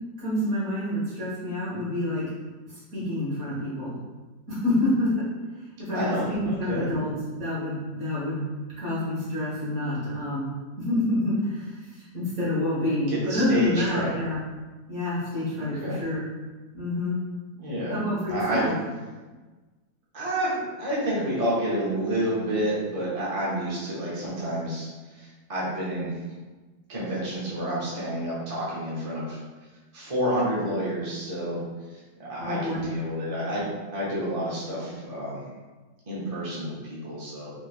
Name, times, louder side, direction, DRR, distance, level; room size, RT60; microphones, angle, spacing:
voice 1, 0.2-2.2 2.9-3.9 4.5-5.1 5.8-8.4 8.8-10.5 10.8-11.8 12.1-14.4 14.9-16.2 16.7-17.2 17.9-18.7 32.4-32.9, left 1 dB, 55° right, -9 dB, 2.1 m, -27 dB
voice 2, 5.9-6.9 13.1-14.2 15.6-16.0 17.6-18.0 18.3-18.7 20.1-24.9 25.2-26.2 26.9-29.4 29.9-31.6 32.2-35.4 36.1-37.5, right 1 dB, 30° right, -7 dB, 0.7 m, -29 dB
4.3 x 3.0 x 2.5 m, 1.3 s
omnidirectional pair, 1.8 m